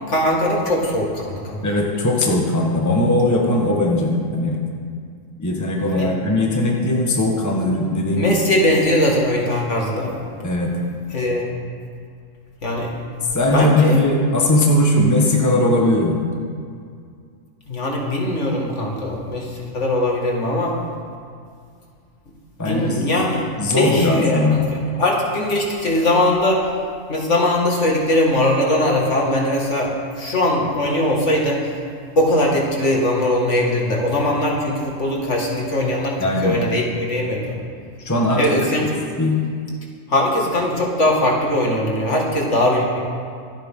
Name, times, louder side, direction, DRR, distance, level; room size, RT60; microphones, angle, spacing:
voice 1, 0.1-1.6 5.9-6.1 8.1-10.1 11.1-11.5 12.6-12.9 13.5-14.0 17.7-20.7 22.7-26.6 27.1-31.7 32.2-37.6 38.4-39.0 40.1-43.0, left 1 dB, 55° left, -2 dB, 2.3 m, -20 dB
voice 2, 1.6-4.6 5.4-8.4 10.4-10.8 13.3-16.2 22.6-24.6 36.2-36.6 38.0-38.4 39.2-39.5, left 1 dB, 15° left, -1 dB, 1.4 m, -19 dB
25.5 x 8.9 x 3.8 m, 2.3 s
omnidirectional pair, 1.5 m